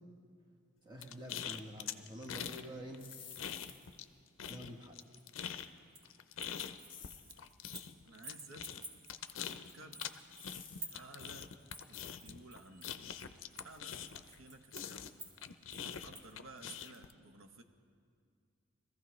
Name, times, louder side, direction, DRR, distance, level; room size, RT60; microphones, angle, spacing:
voice 1, 0.8-3.1 4.5-5.0, equal, 20° right, 0 dB, 1.3 m, -47 dB
sound 1, 1.0-2.7 2.9-4.1 4.4-14.4 14.7-17.1, left 9 dB, 70° left, 0.5 m, -44 dB
sound 2, 3.0-4.1 6.9-7.4 10.3-11.0, left 7 dB, 20° left, 1.4 m, -53 dB
sound 3, 5.0-6.1 6.4-7.9 8.2-16.3, right 2 dB, 60° right, 2.2 m, -51 dB
voice 2, 8.1-8.7 9.5-10.0 10.9-11.6 11.9-13.0 13.6-15.2 16.0-17.6, right 2 dB, 80° right, 7 dB, 0.9 m, -55 dB
23.0 x 14.5 x 3.1 m, 2.2 s
head